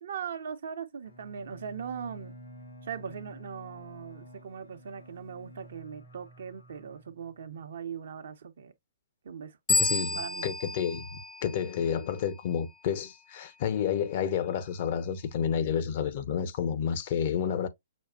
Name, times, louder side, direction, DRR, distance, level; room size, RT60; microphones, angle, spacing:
voice 1, 0.0-2.4 2.8-8.7 9.2-10.4, right 7 dB, 60° right, 0.9 m, -40 dB
Bowed string instrument, 1.0-7.6, right 1 dB, 75° left, 1.6 m, -50 dB
voice 2, 9.7-17.7, left 8 dB, 45° left, 0.8 m, -30 dB
sound 1, 9.7-12.2, left 3 dB, 5° left, 0.4 m, -31 dB
6.2 x 2.4 x 2.3 m
figure-of-eight pair, 120°, 0 cm